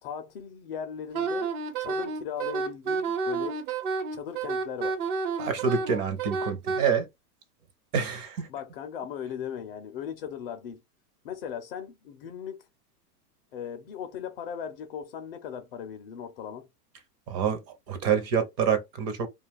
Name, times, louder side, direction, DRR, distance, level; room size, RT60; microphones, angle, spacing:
voice 1, 0.0-1.5 1.8-3.6 4.1-5.0 8.5-10.8 11.2-12.6 13.5-16.7, left 8 dB, 40° left, 0.4 m, -38 dB
Wind instrument woodwind instrument, 1.1-6.8, right 4 dB, 60° right, 1.0 m, -30 dB
voice 2, 5.4-7.1 7.9-8.5 17.3-19.3, right 7 dB, 30° right, 0.6 m, -27 dB
2.4 x 2.3 x 3.3 m
hypercardioid pair, 125°, 48 cm